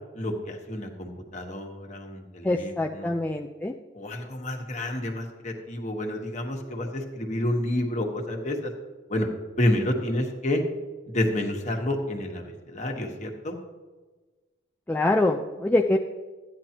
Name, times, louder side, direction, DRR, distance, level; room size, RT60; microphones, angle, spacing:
voice 1, 0.1-3.2 3.9-8.7 9.1-9.3 9.6-10.6 11.1-13.6, left 1 dB, 40° left, 2 dB, 1.3 m, -29 dB
voice 2, 2.4-3.7 14.9-16.0, left 2 dB, 10° left, 1 dB, 0.3 m, -24 dB
13.5 x 9.7 x 2.9 m, 1.3 s
head